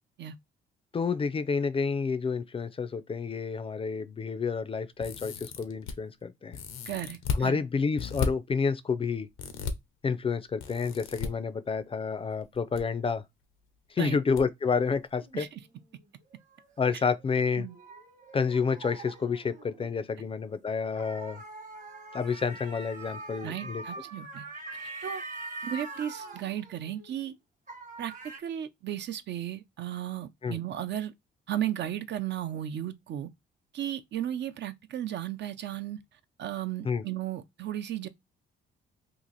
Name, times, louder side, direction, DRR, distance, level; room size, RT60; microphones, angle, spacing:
voice 1, 0.9-6.6 7.3-9.3 10.0-13.2 13.9-15.5 16.8-17.7 18.3-21.4 22.1-23.8 30.4-30.6 36.8-37.0, left 5 dB, 30° left, 0.4 m, -29 dB
sound 1, 5.0-5.9 6.5-7.4 8.0-8.3 9.4-9.7 10.6-11.3 12.4-12.8 13.1-13.2 14.4-14.5 14.8-14.9, left 6 dB, 90° left, 0.7 m, -34 dB
voice 2, 6.9-7.6 14.0-14.2 15.3-15.6 17.6-17.7 23.4-24.5 25.0-25.2 25.6-27.4 28.0-31.1 31.5-33.3 33.7-36.0 36.4-38.1, right 11 dB, 60° right, 0.5 m, -35 dB
sound 2, 15.2-20.0 20.8-27.3 27.7-28.4, right 2 dB, 40° right, 1.1 m, -44 dB
2.9 x 2.5 x 3.8 m
cardioid pair, 90°, 20 cm